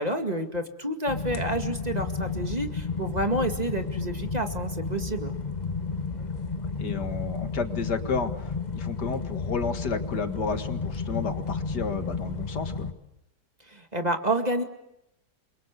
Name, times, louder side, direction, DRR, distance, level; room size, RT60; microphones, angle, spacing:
voice 1, 0.0-5.4 13.7-14.6, right 1 dB, 25° right, 5 dB, 2.2 m, -29 dB
sound 1, 1.1-12.9, left 4 dB, 30° left, 1.3 m, -32 dB
voice 2, 6.8-12.9, left 5 dB, 85° left, 8 dB, 2.5 m, -31 dB
28.5 x 24.0 x 8.3 m, 0.84 s
omnidirectional pair, 1.7 m